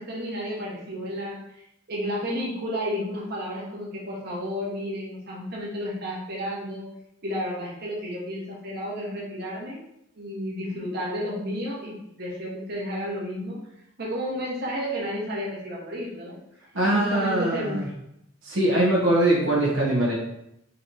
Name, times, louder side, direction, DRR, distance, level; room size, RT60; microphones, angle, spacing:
voice 1, 0.0-6.9 7.2-9.8 10.2-13.6 14.0-16.4 16.9-17.8, equal, 50° right, -4 dB, 1.2 m, -32 dB
voice 2, 16.7-17.9 18.4-20.2, right 1 dB, 75° right, -5 dB, 1.0 m, -22 dB
4.0 x 3.0 x 4.1 m, 0.80 s
head